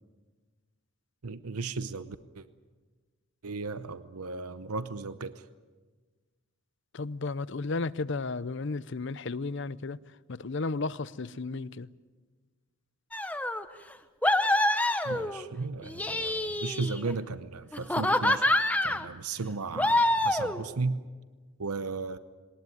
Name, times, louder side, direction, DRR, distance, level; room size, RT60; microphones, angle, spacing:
voice 1, 1.2-2.5 3.4-5.4 15.0-18.5 18.8-21.0 21.6-22.2, right 3 dB, 90° right, 0.8 m, -35 dB
voice 2, 6.9-10.0 10.3-11.9, left 3 dB, 55° left, 0.6 m, -33 dB
sound 1, 13.1-13.6 14.2-15.4 15.8-17.1 17.7-19.0 19.8-20.6, left 1 dB, 5° left, 0.9 m, -26 dB
21.0 x 19.5 x 9.3 m
head